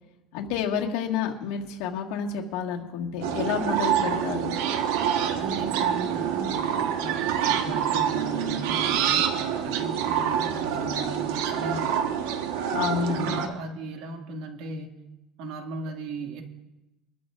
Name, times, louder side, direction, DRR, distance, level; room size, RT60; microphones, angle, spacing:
voice 1, 0.3-4.5 12.7-13.4, left 7 dB, 80° left, 2 dB, 1.7 m, -29 dB
sound 1, 3.2-13.5, right 9 dB, 85° right, 1.2 m, -26 dB
voice 2, 5.4-6.7 7.0-12.0 13.1-15.0 15.4-16.4, right 2 dB, 70° right, 3 dB, 2.0 m, -37 dB
23.0 x 13.0 x 2.5 m, 0.98 s
cardioid pair, 135°, 0 cm